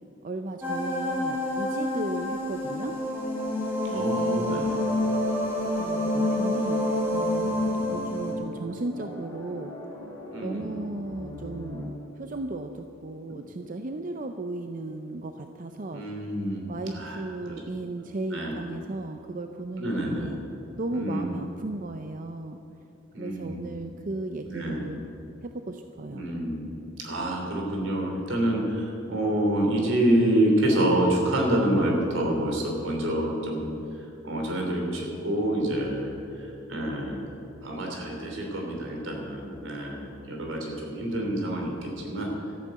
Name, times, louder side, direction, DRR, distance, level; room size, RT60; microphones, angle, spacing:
voice 1, 0.2-3.0 3.9-4.8 5.8-7.5 7.9-9.7 10.4-16.0 16.7-20.4 20.8-22.6 23.2-25.0 25.4-26.2, right 2 dB, 45° right, 6 dB, 0.5 m, -35 dB
sound 1, 0.6-8.3, left 1 dB, 10° right, 2.7 m, -27 dB
voice 2, 3.9-4.8 10.3-10.7 15.9-17.2 17.5-17.6 18.3-18.5 19.8-20.3 20.9-21.3 23.1-23.7 24.4-24.9 26.1-26.8 27.0-33.7 34.2-37.2 37.6-42.3, right 1 dB, 80° right, 0 dB, 3.1 m, -27 dB
sound 2, 5.0-11.9, equal, 15° left, 2.6 m, -41 dB
13.5 x 9.1 x 7.7 m, 2.9 s
head